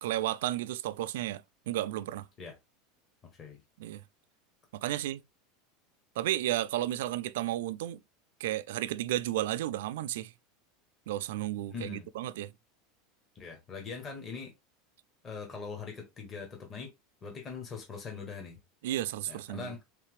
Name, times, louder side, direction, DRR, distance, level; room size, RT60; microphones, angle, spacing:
voice 1, 0.0-2.3 3.8-4.0 4.7-5.2 6.2-8.0 8.4-10.3 11.1-12.5 18.8-19.7, right 14 dB, 80° right, 0.3 m, -33 dB
voice 2, 11.7-12.1 13.3-14.5 15.2-16.9 17.2-18.6 19.3-19.8, left 5 dB, 25° left, 1.0 m, -42 dB
3.7 x 3.2 x 3.3 m
supercardioid pair, 155°, 0 cm